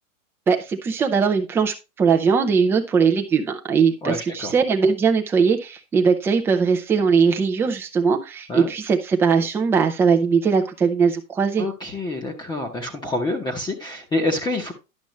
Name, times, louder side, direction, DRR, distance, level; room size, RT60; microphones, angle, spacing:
voice 1, 0.5-11.7, right 5 dB, 5° right, 0.4 m, -20 dB
voice 2, 4.0-4.5 8.5-8.7 11.6-14.7, left 2 dB, 10° left, 0.9 m, -27 dB
10.5 x 6.1 x 3.1 m
hypercardioid pair, 135°, 42 cm